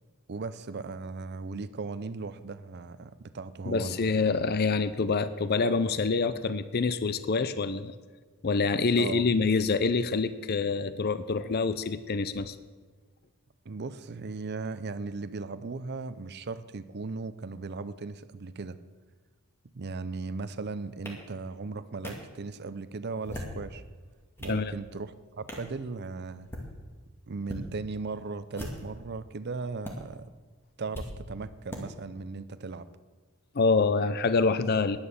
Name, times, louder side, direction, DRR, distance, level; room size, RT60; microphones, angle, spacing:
voice 1, 0.3-4.0 9.0-9.2 13.7-18.8 19.7-23.8 24.4-26.5 27.3-30.3 30.8-32.9, right 4 dB, 50° right, 12 dB, 0.6 m, -37 dB
voice 2, 3.7-7.9 8.4-12.6 24.5-24.7 33.5-35.0, left 4 dB, 45° left, 13 dB, 0.5 m, -26 dB
sound 1, 21.1-21.2 22.0-22.1 23.1-23.6 24.1-24.6 25.5-25.7 26.4-26.7 27.4-27.6 28.5-29.0 29.8-29.9 30.9-31.1 31.7-31.8, left 1 dB, 10° left, 2.2 m, -39 dB
11.0 x 10.5 x 6.7 m, 1.4 s
head